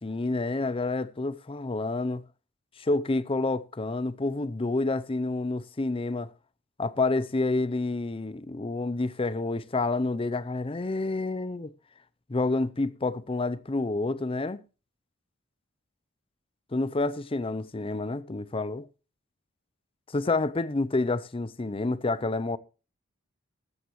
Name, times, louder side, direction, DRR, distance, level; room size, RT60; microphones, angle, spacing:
voice 1, 0.0-2.2 2.8-6.3 6.8-11.7 12.3-14.6 16.7-18.9 20.1-22.6, left 2 dB, 25° left, 0.6 m, -28 dB
15.0 x 12.5 x 3.1 m
head